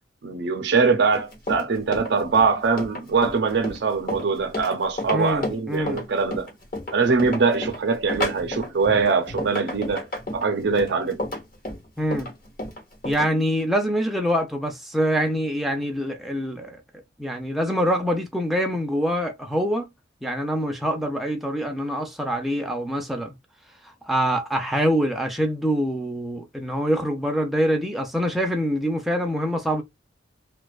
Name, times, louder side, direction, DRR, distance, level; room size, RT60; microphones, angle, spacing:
voice 1, 0.2-6.5 6.9-11.2, right 4 dB, 60° right, 0.5 m, -22 dB
Run, 1.1-13.3, left 1 dB, 45° left, 1.0 m, -32 dB
voice 2, 5.1-6.0 12.0-12.3 13.0-16.8 17.2-19.9 20.2-23.4 23.8-29.8, equal, ahead, 0.4 m, -25 dB
2.4 x 2.2 x 2.3 m
head